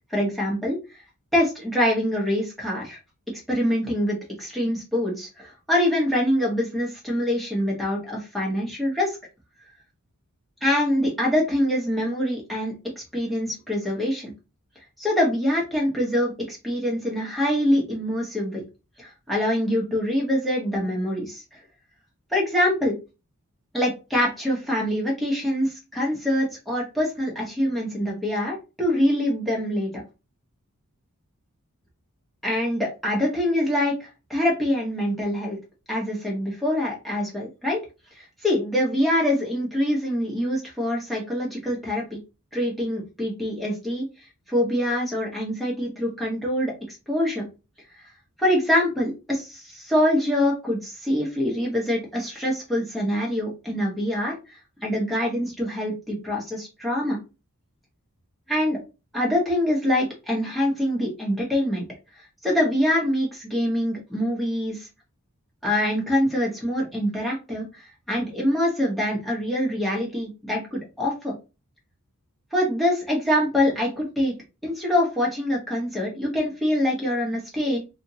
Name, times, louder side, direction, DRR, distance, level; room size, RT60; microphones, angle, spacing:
voice 1, 0.1-0.8 1.3-3.0 3.3-9.2 10.6-12.7 13.1-14.3 15.0-18.6 19.0-21.6 22.3-23.0 23.7-30.0 32.4-35.6 35.9-37.8 38.1-42.2 42.5-44.1 44.5-47.5 48.4-57.2 58.5-58.8 59.1-61.9 62.4-64.9 65.6-67.8 68.1-71.3 72.5-74.3 74.6-77.8, left 1 dB, ahead, -4 dB, 1.0 m, -24 dB
2.8 x 2.6 x 2.7 m, 0.29 s
head